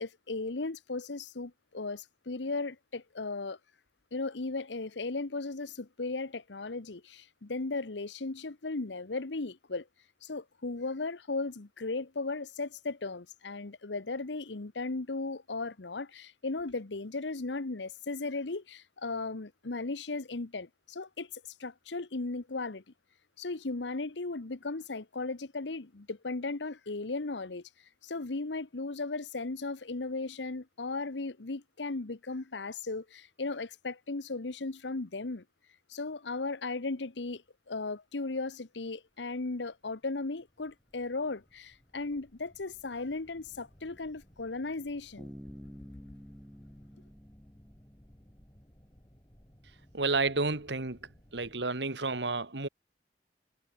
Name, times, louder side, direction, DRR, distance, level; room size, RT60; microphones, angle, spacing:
voice 1, 0.0-3.6 4.1-9.9 10.2-22.8 23.4-27.6 28.0-35.4 35.9-37.4 37.7-45.3, left 3 dB, 90° left, 1.1 m, -36 dB
sound 1, 37.5-37.9 38.3-51.6, equal, 25° left, 4.9 m, -61 dB
Bass guitar, 45.2-48.8, equal, 5° left, 1.2 m, -50 dB
voice 2, 49.9-51.0 51.3-52.7, right 3 dB, 75° right, 2.0 m, -30 dB
head